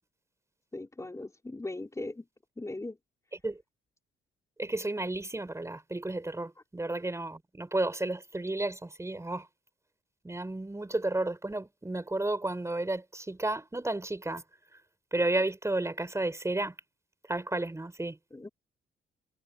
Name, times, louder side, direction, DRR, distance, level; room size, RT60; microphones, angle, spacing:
voice 1, 0.7-2.3 2.6-3.0 18.3-18.5, left 2 dB, 15° left, 4.3 m, -39 dB
voice 2, 4.6-9.5 10.2-14.4 15.1-16.8 17.3-18.2, right 2 dB, 15° right, 5.3 m, -32 dB
cardioid pair, 90°, 20 cm